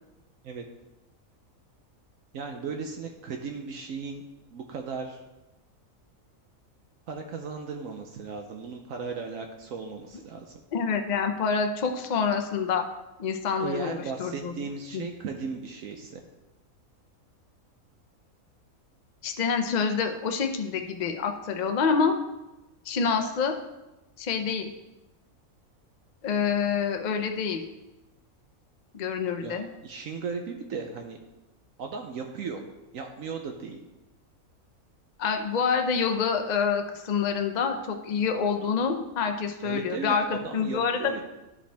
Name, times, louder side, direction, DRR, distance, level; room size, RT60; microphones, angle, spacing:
voice 1, 2.3-4.2 4.5-5.2 7.1-10.5 13.6-16.2 29.4-31.2 31.8-32.6 32.9-33.8 39.6-41.2, right 5 dB, 70° right, 4 dB, 1.1 m, -36 dB
voice 2, 10.7-12.8 13.2-14.5 14.9-15.0 19.2-22.2 22.8-23.6 24.2-24.7 26.2-27.6 28.9-29.7 35.2-41.2, left 6 dB, 45° left, 5 dB, 0.6 m, -27 dB
11.0 x 5.1 x 3.4 m, 1.0 s
omnidirectional pair, 1.5 m